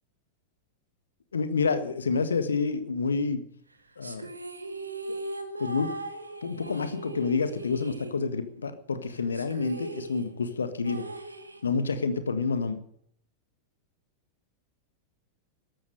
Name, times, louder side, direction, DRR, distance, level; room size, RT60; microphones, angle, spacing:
voice 1, 1.3-3.4 4.0-4.3 5.6-5.9 6.4-11.1 11.6-12.8, left 4 dB, 70° left, 11 dB, 1.6 m, -28 dB
sound 1, 4.0-8.7 8.9-9.0 9.3-12.0, right 2 dB, 80° right, 1.9 m, -39 dB
14.0 x 12.0 x 6.7 m, 0.63 s
figure-of-eight pair, 90°, 0 cm